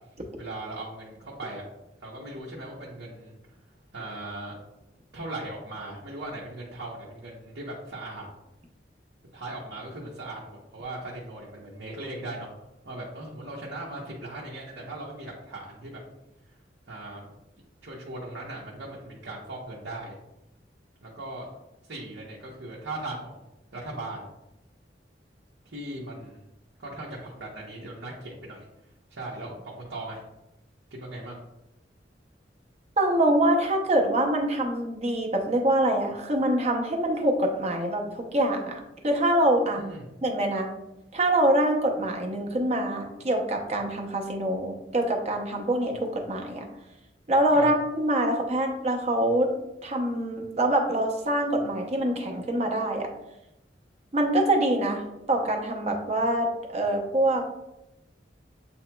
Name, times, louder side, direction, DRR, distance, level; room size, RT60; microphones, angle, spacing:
voice 1, 0.4-1.7 2.0-3.3 3.9-4.6 5.1-8.3 9.3-12.5 12.8-16.0 16.9-17.3 17.8-20.2 21.0-21.5 21.8-23.5 23.7-24.3 25.6-26.4 26.8-28.7 29.1-30.2 30.9-31.4 39.8-40.1 47.5-47.7, right 2 dB, 80° right, -4 dB, 0.9 m, -38 dB
voice 2, 33.0-39.8 40.2-40.7 41.1-46.7 47.3-49.5 49.8-53.1 54.1-55.0 55.3-57.5, right 1 dB, 35° right, 2 dB, 0.7 m, -25 dB
7.8 x 2.9 x 2.2 m, 0.92 s
head